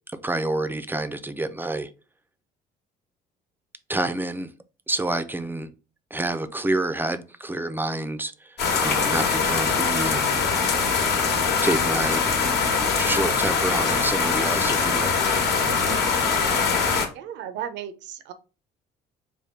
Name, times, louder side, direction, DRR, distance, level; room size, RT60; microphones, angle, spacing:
voice 1, 0.1-1.9 3.9-4.5 4.9-5.7 6.1-10.4 11.6-12.2 12.9-15.2, right 2 dB, 10° right, 0.4 m, -28 dB
sound 1, 8.6-17.1, left 5 dB, 60° left, 1.1 m, -22 dB
voice 2, 17.1-18.3, right 10 dB, 70° right, 0.6 m, -35 dB
3.5 x 2.2 x 4.3 m
supercardioid pair, 75°, 19 cm